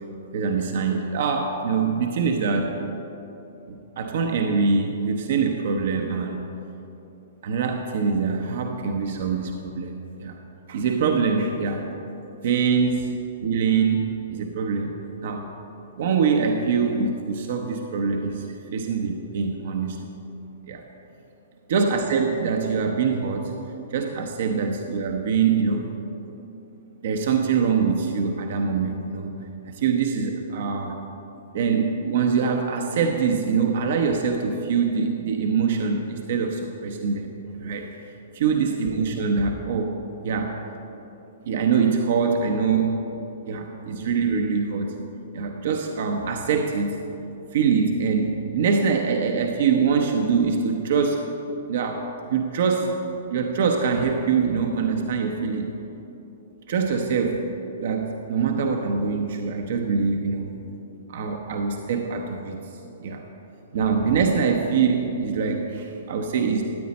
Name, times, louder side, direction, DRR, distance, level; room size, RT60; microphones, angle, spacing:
voice 1, 0.3-2.7 3.7-6.5 7.4-10.4 10.7-11.9 12.4-14.9 15.2-15.5 16.0-18.5 18.7-20.1 20.6-20.8 21.7-23.5 23.9-26.0 27.0-29.3 29.6-31.0 31.5-37.3 37.6-37.9 38.3-40.5 41.4-43.1 43.5-44.9 45.3-47.0 47.5-51.3 51.7-52.9 53.3-55.7 56.7-57.4 57.8-60.5 61.1-62.6 63.0-63.2 63.7-66.6, right 5 dB, 60° right, 3 dB, 0.8 m, -24 dB
13.0 x 9.3 x 4.2 m, 3.0 s
figure-of-eight pair, 115°, 0 cm